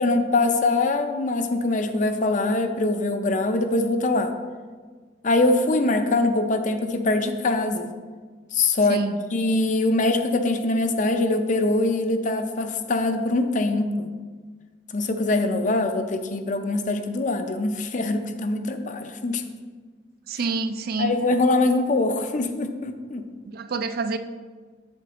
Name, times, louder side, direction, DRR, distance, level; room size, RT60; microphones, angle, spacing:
voice 1, 0.0-4.3 5.2-7.9 8.5-9.0 9.3-14.1 14.9-19.4 21.0-23.3, left 2 dB, 45° left, 0.6 m, -23 dB
voice 2, 8.9-9.2 20.3-21.2 23.5-24.2, right 3 dB, 55° right, 0.4 m, -27 dB
7.8 x 7.1 x 3.0 m
head